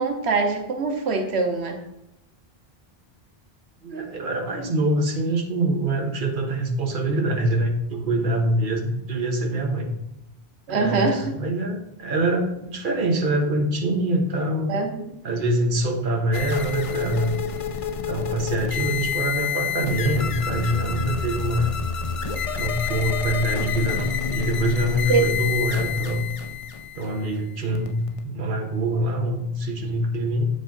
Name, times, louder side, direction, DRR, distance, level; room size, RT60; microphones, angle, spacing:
voice 1, 0.0-1.8 10.7-11.2 14.7-15.1 25.1-25.2, right 4 dB, 85° right, 4 dB, 1.2 m, -23 dB
voice 2, 3.8-9.9 10.7-14.7 15.2-17.4 18.1-21.7 22.5-26.3 26.9-30.5, right 1 dB, 55° right, 2 dB, 1.2 m, -25 dB
sound 1, 16.3-28.2, left 6 dB, 45° left, 0.4 m, -28 dB
8.7 x 5.4 x 3.9 m, 0.84 s
omnidirectional pair, 1.1 m